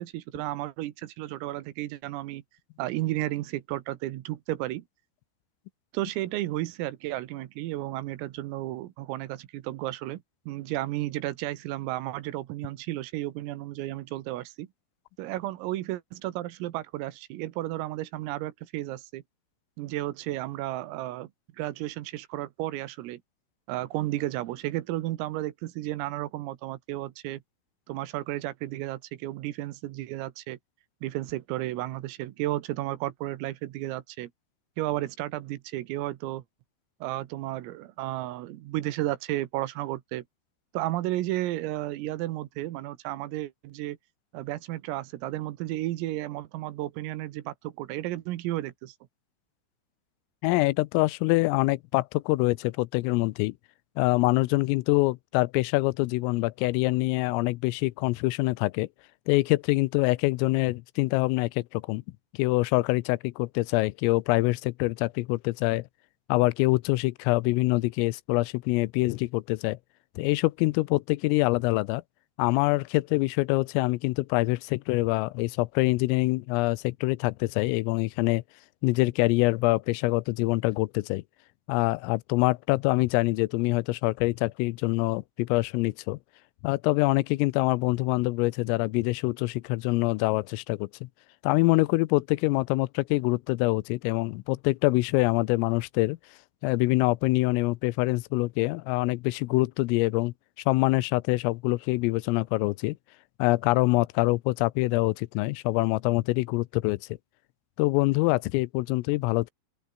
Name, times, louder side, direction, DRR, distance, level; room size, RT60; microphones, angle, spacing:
voice 1, 0.0-2.4 2.8-4.9 5.9-14.7 15.2-19.2 19.8-21.3 21.6-23.2 23.7-27.4 27.9-30.6 31.0-34.3 34.8-36.4 37.0-40.3 40.7-44.0 44.3-49.0, right 16 dB, 90° right, 4.1 m, -33 dB
voice 2, 50.4-53.5 54.0-58.9 59.3-62.0 62.4-65.9 66.3-69.8 70.2-72.0 72.4-78.4 78.8-81.2 81.7-86.2 86.6-91.1 91.4-96.2 96.6-100.3 100.7-103.0 103.4-107.0 107.8-109.5, left 22 dB, 85° left, 3.4 m, -25 dB
open air
omnidirectional pair, 5.8 m